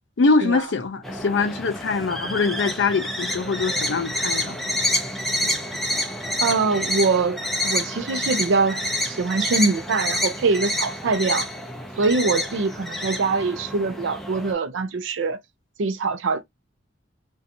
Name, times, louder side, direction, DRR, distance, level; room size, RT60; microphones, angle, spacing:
voice 1, 0.2-4.6, left 4 dB, 75° left, 0.5 m, -23 dB
sound 1, 1.0-14.5, left 1 dB, ahead, 0.4 m, -28 dB
voice 2, 6.4-11.5 12.0-15.4 15.8-16.4, right 4 dB, 85° right, 0.4 m, -23 dB
2.6 x 2.2 x 2.5 m
head